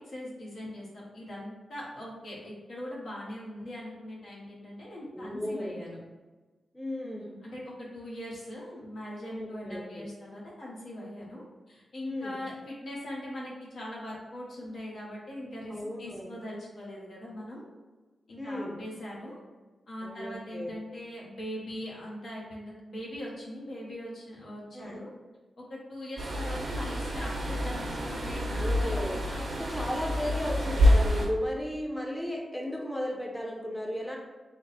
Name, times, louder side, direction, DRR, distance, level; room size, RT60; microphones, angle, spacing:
voice 1, 0.0-6.0 7.0-17.7 18.3-19.4 19.9-25.1 25.6-29.1, left 1 dB, 75° left, -5 dB, 1.1 m, -41 dB
voice 2, 5.1-5.7 6.7-7.3 9.3-10.1 12.0-12.4 15.7-16.3 18.4-18.8 20.0-20.7 24.7-25.0 28.5-29.2 29.6-34.2, left 1 dB, 5° left, -1 dB, 0.7 m, -35 dB
sound 1, 26.2-31.3, equal, 60° right, 0.8 m, -27 dB
3.5 x 2.0 x 4.0 m, 1.3 s
cardioid pair, 50°, 0 cm